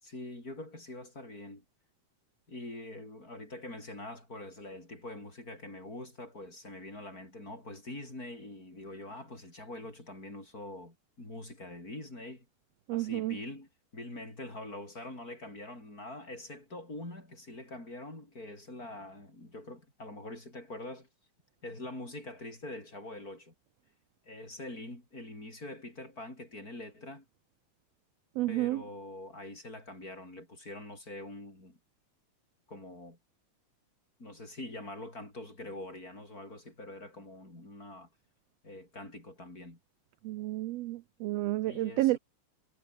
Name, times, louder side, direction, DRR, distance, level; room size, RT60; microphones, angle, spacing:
voice 1, 0.0-1.6 2.5-12.5 12.9-21.1 21.6-23.5 24.3-27.3 28.5-31.8 32.7-33.2 34.2-38.1 38.6-39.8 41.6-42.2, left 1 dB, 25° left, 8.2 m, -44 dB
voice 2, 12.9-13.4 28.4-28.8 40.2-42.2, right 17 dB, 75° right, 1.6 m, -30 dB
omnidirectional pair, 3.4 m